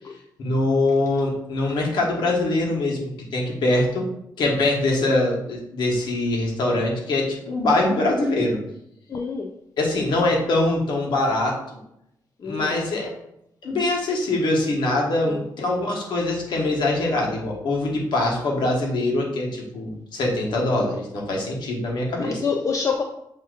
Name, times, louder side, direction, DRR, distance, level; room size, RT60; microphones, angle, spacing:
voice 1, 0.4-4.1 4.4-8.6 9.8-11.6 12.4-13.1 13.6-22.4, left 2 dB, 75° left, -1 dB, 1.3 m, -23 dB
voice 2, 9.1-9.5 12.4-12.9 15.2-15.4 22.2-23.0, left 5 dB, 40° left, 2 dB, 0.4 m, -27 dB
7.8 x 2.8 x 2.4 m, 0.80 s
cardioid pair, 90°, 8 cm